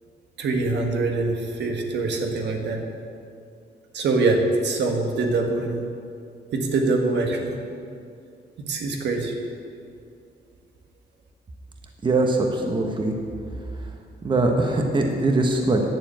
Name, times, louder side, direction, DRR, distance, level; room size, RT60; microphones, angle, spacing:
voice 1, 0.4-2.8 3.9-5.8 6.5-7.6 8.7-9.3, right 3 dB, 75° right, 2 dB, 1.6 m, -24 dB
voice 2, 12.0-13.1 14.2-15.8, right 2 dB, 25° right, 2 dB, 1.0 m, -21 dB
10.5 x 6.9 x 8.9 m, 2.4 s
wide cardioid pair, 165°, 18 cm